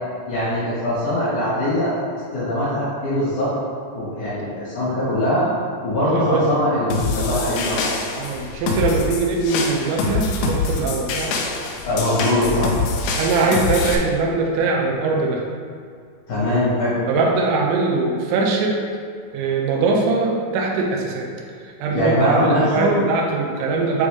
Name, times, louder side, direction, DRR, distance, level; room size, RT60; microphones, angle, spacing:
voice 1, 0.3-1.9 2.3-3.5 3.9-5.5 5.8-7.9 11.8-12.7 16.3-17.0 21.9-23.0, left 1 dB, 65° left, -10 dB, 1.9 m, -21 dB
voice 2, 6.1-6.5 8.2-11.3 13.2-15.4 17.1-18.8 19.3-21.3 21.6-24.1, right 3 dB, 90° right, 0 dB, 3.3 m, -21 dB
sound 1, 6.9-14.0, left 4 dB, 85° left, 2.7 m, -25 dB
8.2 x 3.6 x 3.4 m, 2.2 s
omnidirectional pair, 5.8 m